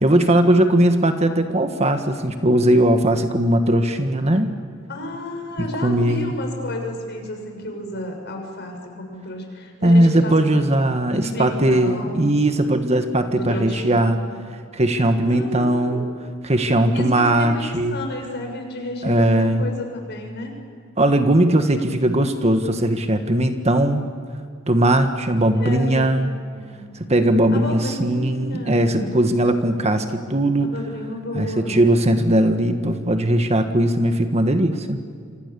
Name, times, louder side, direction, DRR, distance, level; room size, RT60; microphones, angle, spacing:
voice 1, 0.0-4.5 5.6-6.3 9.8-14.2 14.7-16.1 16.4-18.0 19.0-19.7 21.0-24.1 24.7-26.3 27.1-30.7 31.3-35.0, right 1 dB, 30° right, 7 dB, 1.6 m, -19 dB
voice 2, 4.9-10.6 11.2-12.3 13.4-14.2 15.2-16.0 16.9-20.5 25.5-26.8 27.5-29.2 30.6-31.8, left 1 dB, 55° left, 3 dB, 6.4 m, -32 dB
30.0 x 25.0 x 7.0 m, 2.2 s
head